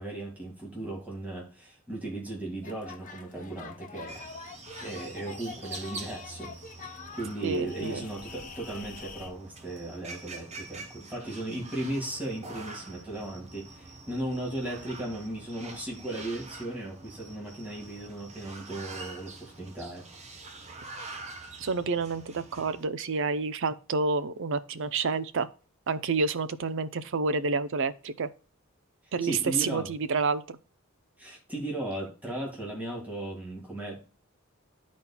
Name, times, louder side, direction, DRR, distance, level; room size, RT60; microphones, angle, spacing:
voice 1, 0.0-4.3 4.8-6.5 6.8-20.1 29.2-29.9 31.2-34.0, right 1 dB, 5° right, 2.0 m, -36 dB
sound 1, 2.6-9.3, left 5 dB, 40° left, 0.8 m, -45 dB
sound 2, 4.1-22.9, right 3 dB, 30° right, 1.1 m, -45 dB
voice 2, 7.4-8.0 21.6-25.5 25.9-28.3 29.1-30.4, right 4 dB, 65° right, 0.6 m, -29 dB
12.0 x 4.2 x 2.3 m
head